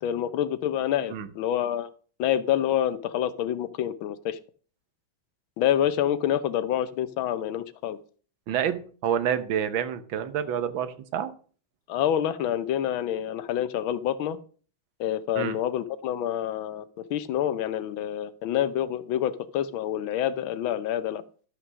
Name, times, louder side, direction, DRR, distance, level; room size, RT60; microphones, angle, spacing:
voice 1, 0.0-1.9 2.2-4.4 5.6-8.0 11.9-14.4 15.0-21.2, left 10 dB, 80° left, 14 dB, 1.6 m, -27 dB
voice 2, 8.5-11.3 15.4-15.6, right 9 dB, 75° right, 12 dB, 1.7 m, -28 dB
12.5 x 6.0 x 6.2 m, 0.42 s
omnidirectional pair, 2.2 m